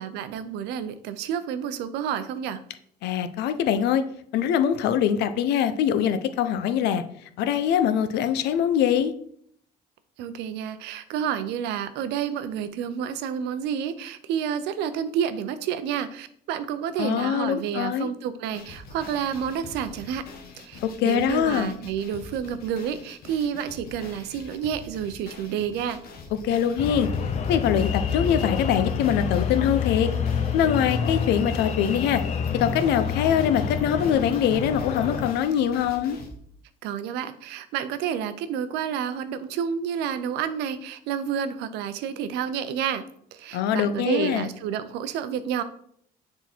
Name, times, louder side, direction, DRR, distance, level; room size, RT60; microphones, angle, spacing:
voice 1, 0.0-2.6 10.2-20.3 20.6-26.0 36.8-43.0 43.3-45.6, right 8 dB, 90° right, 12 dB, 0.6 m, -29 dB
voice 2, 3.0-4.0 4.3-7.0 7.4-9.1 17.0-18.1 20.8-21.7 26.3-27.1 27.5-30.1 30.5-32.2 32.5-36.2 43.5-44.5, left 9 dB, 85° left, 10 dB, 0.6 m, -23 dB
sound 1, 18.4-36.4, left 3 dB, 65° left, 1.3 m, -44 dB
sound 2, 26.8-35.3, left 7 dB, 40° left, 0.7 m, -28 dB
7.2 x 3.8 x 4.3 m, 0.66 s
cardioid pair, 110°, 17 cm